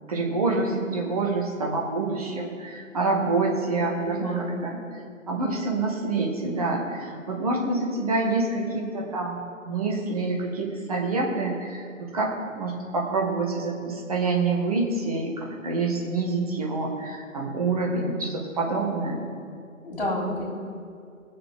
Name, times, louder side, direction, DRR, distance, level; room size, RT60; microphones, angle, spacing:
voice 1, 0.1-4.8 5.3-9.4 9.7-19.3, right 3 dB, 25° right, -1 dB, 1.4 m, -27 dB
voice 2, 4.0-4.6 19.8-20.5, left 1 dB, 45° left, -2 dB, 3.1 m, -30 dB
18.0 x 6.9 x 3.6 m, 2.4 s
figure-of-eight pair, 145°, 41 cm